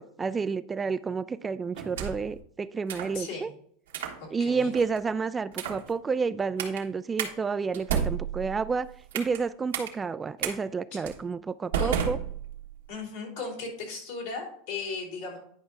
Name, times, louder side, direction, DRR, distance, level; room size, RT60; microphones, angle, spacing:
voice 1, 0.0-3.5 4.3-12.2, right 5 dB, 20° right, 15 dB, 0.3 m, -30 dB
sound 1, 1.7-2.3 2.9-3.2 3.9-4.2 4.7-5.0 5.5-5.9 6.6-6.8 7.2-7.3 7.7-9.4 9.7-9.9 10.4-10.5 11.1-11.2 11.7-12.8, right 8 dB, 85° right, 1.4 m, -32 dB
voice 2, 3.1-3.5 4.2-4.7 10.9-11.0 11.8-12.0 12.9-15.4, left 4 dB, 75° left, -1 dB, 3.5 m, -36 dB
10.0 x 5.3 x 3.5 m, 0.64 s
hypercardioid pair, 105°, 0 cm